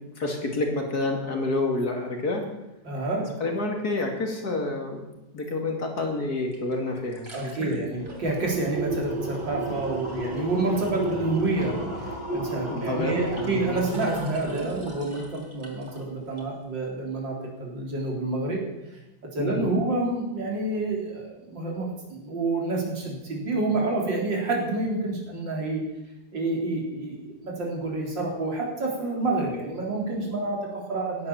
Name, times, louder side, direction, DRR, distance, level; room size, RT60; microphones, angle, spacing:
voice 1, 0.2-2.5 3.4-5.0 5.3-7.8 12.7-13.8 19.4-19.8, left 2 dB, 55° left, 2 dB, 2.9 m, -28 dB
voice 2, 2.8-3.3 7.3-18.6 19.3-25.8 26.3-31.3, right 2 dB, 80° right, -1 dB, 4.4 m, -28 dB
sound 1, 6.5-6.6 6.9-16.0 16.4-16.5, right 1 dB, 25° right, 3.8 m, -33 dB
16.5 x 10.5 x 7.1 m, 0.93 s
omnidirectional pair, 2.0 m